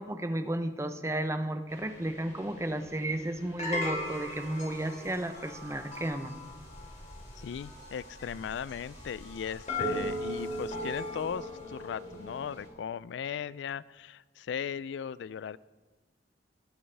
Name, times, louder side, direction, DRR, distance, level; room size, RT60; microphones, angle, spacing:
voice 1, 0.0-6.4, right 1 dB, 15° right, 8 dB, 0.7 m, -33 dB
sound 1, 1.7-12.7, left 1 dB, 40° left, 2.8 m, -39 dB
voice 2, 7.4-15.6, left 7 dB, 80° left, 19 dB, 0.3 m, -37 dB
20.0 x 9.5 x 3.4 m, 1.2 s
head